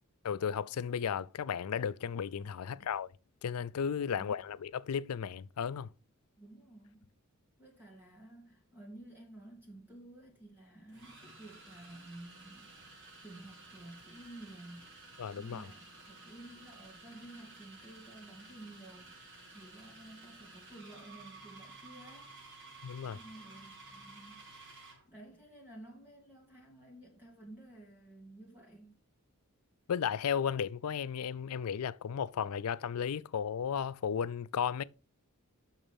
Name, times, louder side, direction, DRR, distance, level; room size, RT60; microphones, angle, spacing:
voice 1, 0.2-3.1 3.4-5.9 15.2-15.7 22.8-23.2 29.9-34.8, left 7 dB, 80° left, 0.4 m, -34 dB
voice 2, 6.4-7.2 7.6-12.8 13.2-15.0 15.4-19.3 19.5-22.4 23.1-24.4 25.1-29.1, right 1 dB, 10° right, 2.6 m, -52 dB
sound 1, 9.7-9.8 10.9-25.1, right 3 dB, 55° right, 4.5 m, -54 dB
7.1 x 6.4 x 5.3 m
head